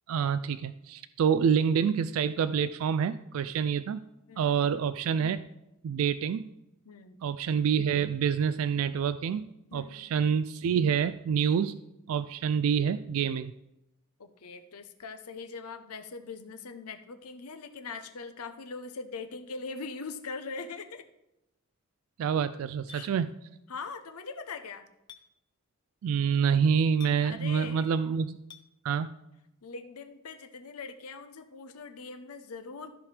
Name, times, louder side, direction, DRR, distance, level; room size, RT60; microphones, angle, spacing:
voice 1, 0.1-4.0 4.4-5.4 5.8-6.5 7.2-11.8 12.1-13.5 22.2-23.3 26.0-28.4 28.8-29.1, right 7 dB, 70° right, 13 dB, 0.3 m, -27 dB
voice 2, 4.3-4.6 6.9-7.2 9.7-10.1 14.2-21.1 22.9-23.1 23.7-24.9 27.2-27.9 29.6-32.9, left 4 dB, 85° left, 8 dB, 0.8 m, -41 dB
Chink clink, 22.9-23.0 25.1-25.2 27.0-27.2 28.5-28.7, left 7 dB, 20° left, 0.6 m, -47 dB
14.0 x 5.0 x 3.3 m, 0.88 s
head